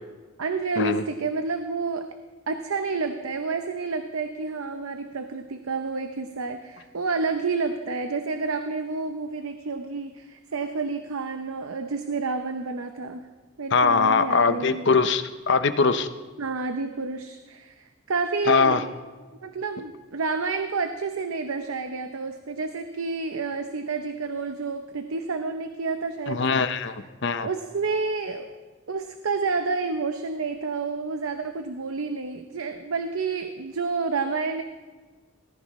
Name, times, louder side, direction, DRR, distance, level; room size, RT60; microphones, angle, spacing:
voice 1, 0.4-2.1 2.5-13.3 13.6-14.8 16.4-18.9 19.4-26.6 27.4-28.5 28.9-34.6, right 4 dB, 85° right, 7 dB, 0.7 m, -29 dB
voice 2, 13.7-16.1 18.5-18.8 26.3-26.9 27.2-27.5, left 4 dB, 60° left, 10 dB, 0.7 m, -21 dB
18.5 x 14.5 x 3.2 m, 1.4 s
head